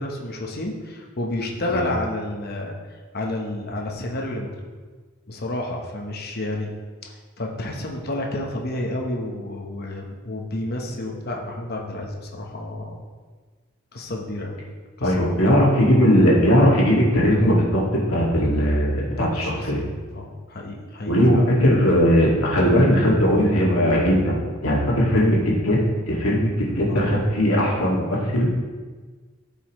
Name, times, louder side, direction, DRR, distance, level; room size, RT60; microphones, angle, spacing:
voice 1, 0.0-2.7 3.1-4.7 5.3-6.7 7.0-13.0 13.9-14.5 15.0-15.4 19.2-21.5 26.9-27.4, left 1 dB, 45° left, 0 dB, 1.1 m, -30 dB
voice 2, 15.0-17.8 18.1-19.8 21.1-24.3 24.6-25.8 26.1-28.5, equal, 85° left, -4 dB, 2.1 m, -19 dB
14.0 x 5.5 x 3.1 m, 1.4 s
head